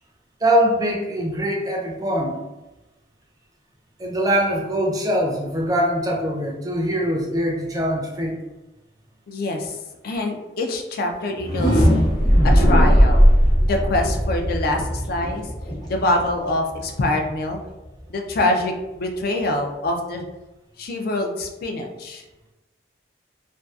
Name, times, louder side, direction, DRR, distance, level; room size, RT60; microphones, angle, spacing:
voice 1, 0.4-2.4 4.0-8.4, equal, 20° right, -1 dB, 0.4 m, -22 dB
voice 2, 9.3-9.8 10.0-11.9 12.4-13.3 13.6-15.5 15.9-17.6 18.1-20.2 20.8-22.2, left 1 dB, 55° left, 3 dB, 0.3 m, -24 dB
sound 1, 11.3-17.2, equal, 20° left, 0.6 m, -18 dB
2.5 x 2.3 x 2.3 m, 1.0 s
head